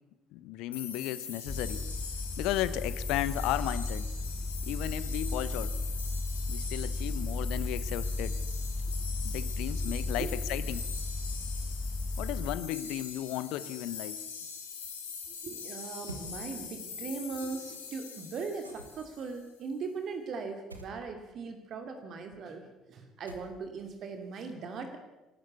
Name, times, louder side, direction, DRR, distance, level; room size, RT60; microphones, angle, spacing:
voice 1, 0.3-1.9 2.4-4.1 4.6-5.7 6.5-8.4 9.2-10.8 12.2-14.2, left 14 dB, 60° left, 16 dB, 1.0 m, -34 dB
sound 1, 0.7-19.4, left 6 dB, 80° left, 3.5 m, -43 dB
sound 2, 1.5-12.6, left 2 dB, 10° left, 2.1 m, -34 dB
voice 2, 15.4-22.6 22.9-25.0, right 4 dB, 45° right, 5 dB, 2.7 m, -39 dB
sound 3, 16.1-16.3 18.6-19.2 20.7-21.0 23.3-23.8, right 2 dB, 85° right, 1.5 m, -46 dB
26.5 x 13.0 x 8.1 m, 1.0 s
figure-of-eight pair, 55°, 0 cm